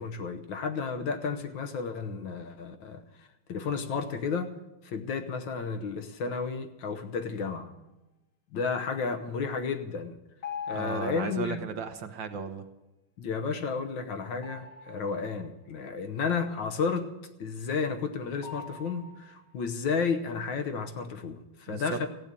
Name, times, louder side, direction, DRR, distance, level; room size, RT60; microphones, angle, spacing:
voice 1, 0.0-4.5 4.8-7.7 8.5-10.2 10.7-11.6 13.2-17.1 17.4-22.1, left 5 dB, 65° left, 6 dB, 1.7 m, -32 dB
sound 1, 7.4-7.8 10.4-11.6 14.4-15.5 18.4-19.6, left 6 dB, 45° left, 3.2 m, -42 dB
voice 2, 10.7-12.7 21.7-21.8, right 6 dB, 65° right, 7 dB, 1.6 m, -35 dB
15.0 x 8.9 x 8.3 m, 0.99 s
omnidirectional pair, 2.3 m